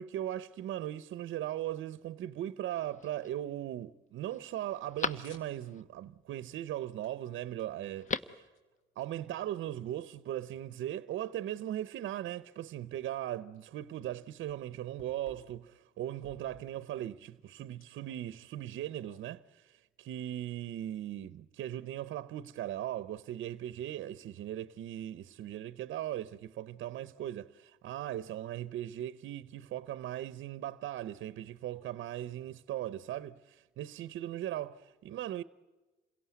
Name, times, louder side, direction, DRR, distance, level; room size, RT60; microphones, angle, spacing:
voice 1, 0.0-8.4 9.0-35.4, right 12 dB, 75° right, 0.8 m, -39 dB
Telephone, 2.7-3.3 3.8-3.9 4.3-5.8 7.8-8.5 8.8-8.9, left 5 dB, 40° left, 1.2 m, -39 dB
sound 1, 4.9-6.3 7.0-7.1 7.4-9.5 9.9-10.0 10.7-10.8 11.2-11.3 13.3-14.1 14.5-15.7 16.1-16.7 17.8-19.2, left 3 dB, 80° left, 4.3 m, -59 dB
28.0 x 17.5 x 9.4 m
cardioid pair, 90°, 20 cm